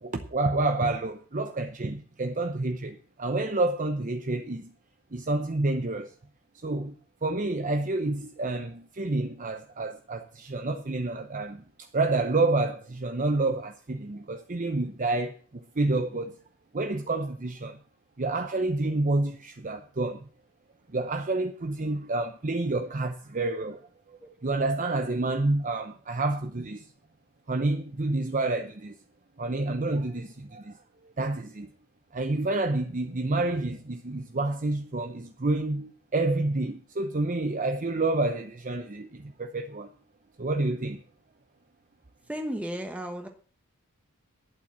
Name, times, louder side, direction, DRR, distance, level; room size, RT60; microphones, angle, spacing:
voice 1, 0.0-4.7 5.1-6.1 6.6-16.3 16.7-17.8 18.2-20.2 20.9-23.8 24.4-26.9 27.5-28.9 29.4-30.8 31.2-31.7 32.1-39.9 40.4-41.0, right 2 dB, 35° right, 0.7 m, -29 dB
voice 2, 42.3-43.3, equal, 5° right, 1.0 m, -34 dB
11.5 x 9.0 x 7.3 m
head